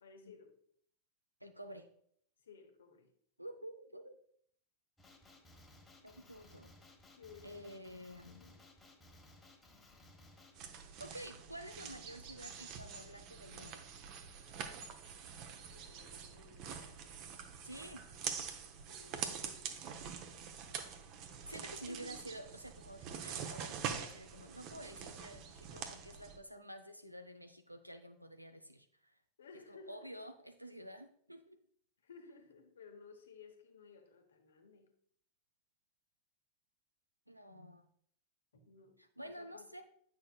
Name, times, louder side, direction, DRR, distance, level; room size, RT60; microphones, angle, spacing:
voice 1, 0.0-0.6 2.4-3.1 7.1-7.5 8.2-8.6 15.7-17.0 18.9-21.0 21.7-22.3 29.4-30.1 32.0-34.9 38.7-39.7, left 4 dB, 65° left, 1.1 m, -58 dB
voice 2, 1.4-1.9 3.4-4.2 6.0-6.7 7.4-8.4 11.0-13.8 17.6-18.1 21.5-29.1 29.7-31.6 37.3-37.9 39.0-39.8, equal, 90° right, 0.6 m, -50 dB
Male speech man speaking, 5.0-10.6, left 1 dB, 10° left, 1.3 m, -60 dB
sound 1, 10.6-26.4, right 7 dB, 40° right, 0.8 m, -45 dB
8.8 x 6.1 x 2.3 m
figure-of-eight pair, 90°, 0 cm